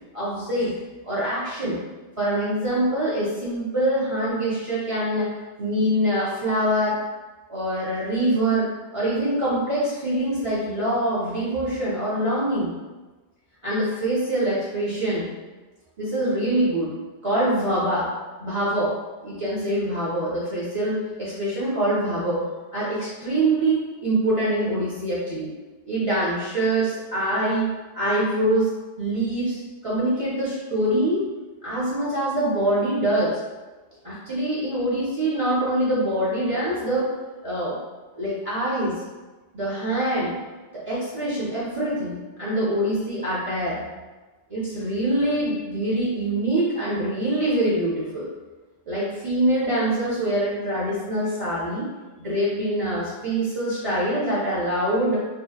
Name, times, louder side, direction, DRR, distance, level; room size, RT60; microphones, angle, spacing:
voice 1, 0.1-0.7 1.0-1.8 2.2-5.3 5.6-7.0 7.5-12.7 13.6-15.3 16.0-16.9 17.2-18.1 18.4-18.9 19.2-22.4 22.7-25.5 25.9-28.7 29.0-31.3 31.6-33.3 34.0-37.1 37.4-37.8 38.2-39.0 39.5-40.4 40.7-43.8 44.5-48.3 48.9-51.9 52.2-55.2, right 1 dB, 50° right, -8 dB, 0.4 m, -24 dB
2.7 x 2.0 x 2.2 m, 1.2 s
omnidirectional pair, 1.1 m